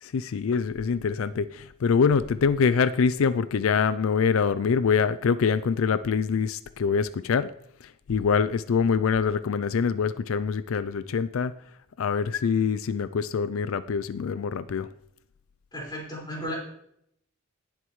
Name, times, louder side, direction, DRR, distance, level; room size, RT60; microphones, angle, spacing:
voice 1, 0.0-7.5 7.8-11.5 12.0-14.9, left 6 dB, 90° left, 14 dB, 0.4 m, -25 dB
voice 2, 15.7-16.6, equal, 20° left, -4 dB, 5.0 m, -34 dB
18.0 x 7.9 x 3.1 m, 0.73 s
head